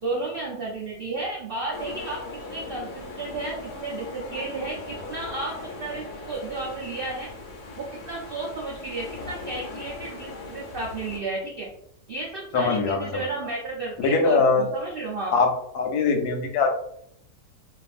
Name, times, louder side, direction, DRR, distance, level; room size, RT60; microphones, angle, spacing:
voice 1, 0.0-7.3 7.8-11.7 12.1-15.3, right 3 dB, 75° right, -4 dB, 0.5 m, -33 dB
sound 1, 1.7-11.2, left 3 dB, 65° left, 1.1 m, -39 dB
voice 2, 12.5-13.3 14.0-14.7 15.3-15.5 15.7-16.7, left 4 dB, 90° left, 3 dB, 1.1 m, -22 dB
2.5 x 2.5 x 2.4 m, 0.74 s
omnidirectional pair, 1.6 m